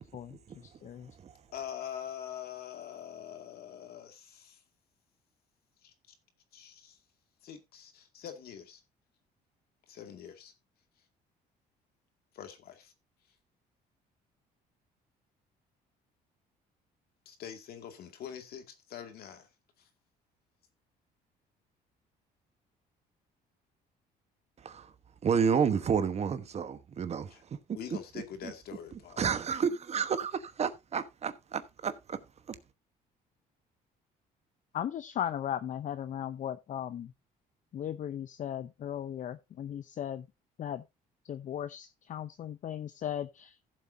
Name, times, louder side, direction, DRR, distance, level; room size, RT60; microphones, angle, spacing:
voice 1, 0.0-1.1 34.7-37.1 37.7-40.3 40.6-40.8 41.2-43.6, left 10 dB, 50° left, 0.7 m, -37 dB
voice 2, 1.5-4.6 5.8-5.9 6.5-7.0 7.4-8.8 9.9-10.5 12.3-12.9 17.3-19.5 19.8-19.9 27.3-27.4 27.7-29.3, left 9 dB, 65° left, 2.2 m, -44 dB
voice 3, 25.2-27.3 28.4-28.5 29.2-32.2, right 6 dB, 40° right, 1.1 m, -30 dB
15.5 x 7.5 x 2.7 m
cardioid pair, 110°, 17 cm